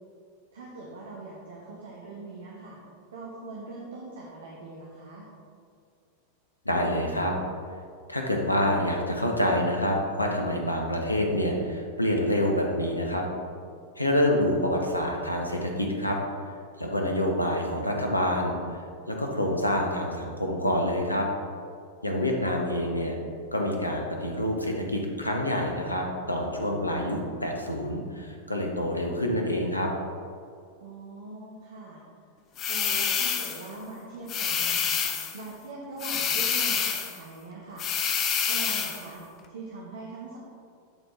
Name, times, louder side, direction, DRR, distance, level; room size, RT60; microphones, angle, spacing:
voice 1, 0.5-2.8 3.1-5.3 22.1-22.9 30.8-32.0 32.7-37.8 38.5-40.4, right 3 dB, 60° right, -3 dB, 1.1 m, -42 dB
voice 2, 6.6-7.3 8.1-13.2 14.0-16.2 16.8-18.5 19.1-21.3 22.0-23.1 23.5-29.9, left 1 dB, 85° left, 1 dB, 0.9 m, -27 dB
sound 1, 32.6-33.7 34.3-35.4 36.0-37.2 37.8-39.0, left 7 dB, 35° left, 0.7 m, -27 dB
11.0 x 4.4 x 3.2 m, 2.3 s
figure-of-eight pair, 90°, 0 cm